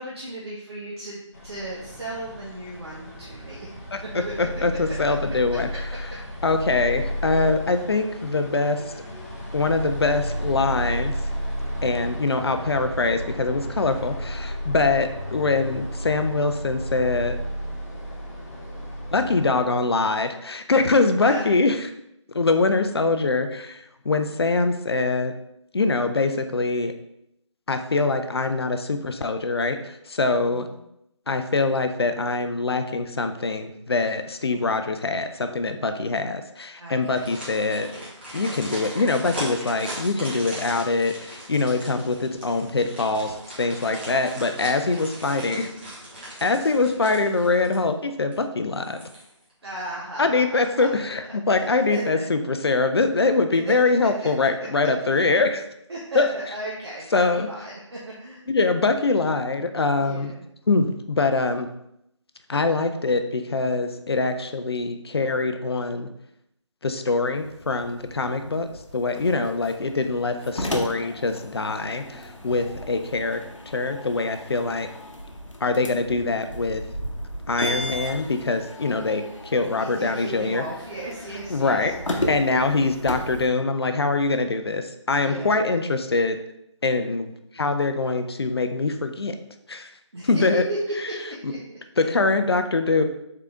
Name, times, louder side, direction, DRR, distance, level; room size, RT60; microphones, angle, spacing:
voice 1, 0.0-3.8 4.1-4.3 4.9-5.1 11.8-12.0 21.2-21.4 30.3-30.8 36.8-37.3 49.6-50.9 51.5-52.2 53.6-53.7 54.2-54.3 55.9-58.4 59.9-60.5 69.1-69.4 72.4-72.7 79.8-81.9 85.2-85.6 90.1-90.5 91.1-91.6 92.0-92.1, right 1 dB, 55° right, -5 dB, 0.9 m, -36 dB
sound 1, 1.3-19.7, equal, 30° left, 0.8 m, -33 dB
voice 2, 3.9-5.7 6.4-8.8 9.5-11.1 11.8-17.4 19.1-21.8 22.3-25.3 25.7-26.9 27.7-30.7 31.3-37.9 38.3-45.7 46.4-49.0 50.2-55.6 56.1-56.3 57.1-57.5 58.5-60.3 60.7-61.7 62.5-66.1 66.8-73.4 73.7-74.9 75.6-76.8 77.5-80.6 81.5-81.9 82.3-86.4 86.8-89.4 89.7-89.9 90.2-90.6 91.4-91.5 92.0-93.0, left 3 dB, 55° left, 8 dB, 0.4 m, -23 dB
sound 2, 37.0-48.0 48.3-48.4 48.8-49.5 49.8-50.0, equal, 20° right, 1.0 m, -38 dB
sound 3, 67.3-83.5, left 1 dB, 75° left, 0.9 m, -35 dB
3.7 x 3.4 x 3.6 m, 0.80 s
figure-of-eight pair, 160°, 16 cm